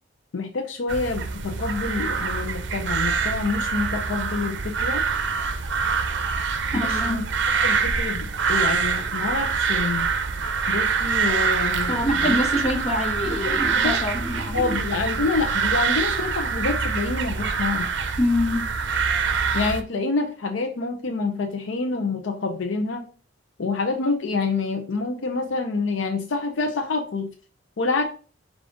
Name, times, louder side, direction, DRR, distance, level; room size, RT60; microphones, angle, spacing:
voice 1, 0.3-5.0 6.7-7.2 7.6-10.1 10.7-12.4 13.5-14.0 14.5-17.9 19.5-23.0 23.6-27.3 27.8-28.0, left 3 dB, 75° left, 4 dB, 0.6 m, -27 dB
sound 1, 0.9-19.8, right 5 dB, 65° right, 0.5 m, -25 dB
voice 2, 6.7-7.2 11.9-14.7 18.2-18.7, left 1 dB, 35° left, 2 dB, 1.1 m, -25 dB
4.9 x 2.4 x 3.8 m, 0.38 s
head